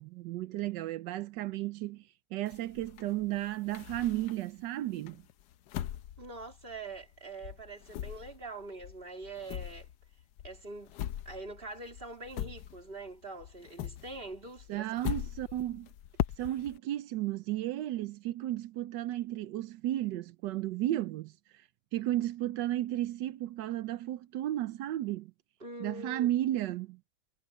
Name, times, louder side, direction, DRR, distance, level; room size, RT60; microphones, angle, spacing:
voice 1, 0.0-5.2 14.7-15.9 16.4-25.3 25.8-27.0, right 14 dB, 85° right, 1.3 m, -34 dB
sound 1, 2.5-4.6 5.1-7.2 7.4-13.1 13.4-16.8, left 12 dB, 75° left, 1.2 m, -40 dB
voice 2, 6.2-9.9 10.4-10.9 11.2-15.0 25.6-26.3, right 2 dB, 30° right, 3.2 m, -44 dB
omnidirectional pair, 1.9 m